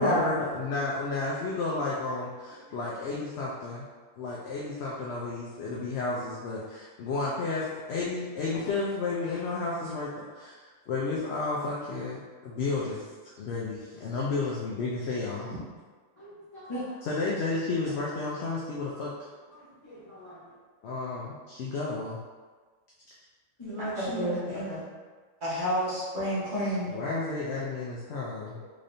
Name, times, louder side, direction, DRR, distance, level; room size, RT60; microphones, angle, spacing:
voice 1, 0.0-3.8 4.2-15.6 17.0-19.3 20.8-22.2 26.9-28.6, left 3 dB, 65° left, -5 dB, 0.8 m, -32 dB
voice 2, 16.2-16.9 19.6-20.5 23.6-24.9 28.3-28.6, right 1 dB, 25° left, -15 dB, 1.2 m, -39 dB
voice 3, 23.8-24.3 24.7-24.8 25.4-26.9, equal, 40° right, -10 dB, 1.5 m, -29 dB
3.8 x 3.4 x 2.6 m, 1.4 s
omnidirectional pair, 1.3 m